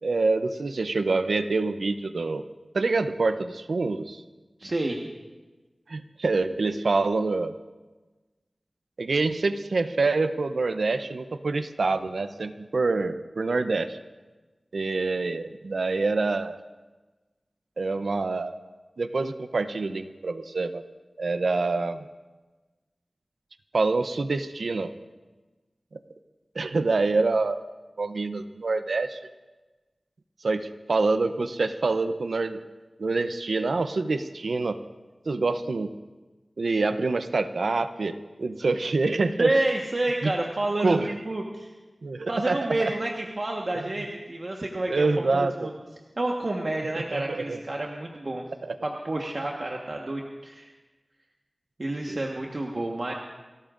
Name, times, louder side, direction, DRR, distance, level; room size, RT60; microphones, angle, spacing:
voice 1, 0.0-2.4 2.7-4.2 5.9-7.5 9.0-14.0 14.7-16.6 17.8-18.5 19.0-20.8 21.2-22.1 23.7-24.9 26.5-27.6 28.0-29.2 30.4-32.6 33.0-34.8 35.3-35.9 36.6-39.5 40.2-40.3 40.8-41.1 42.0-42.9 44.9-45.7 47.1-47.6 48.6-48.8 52.1-52.2, right 3 dB, 85° right, 10 dB, 0.6 m, -26 dB
voice 2, 4.6-5.0 39.4-41.0 41.2-41.7 42.3-45.8 46.2-48.4 48.8-50.7 51.8-53.1, right 2 dB, 55° right, 0 dB, 1.3 m, -29 dB
29.5 x 14.0 x 2.5 m, 1.2 s
wide cardioid pair, 55°, 0 cm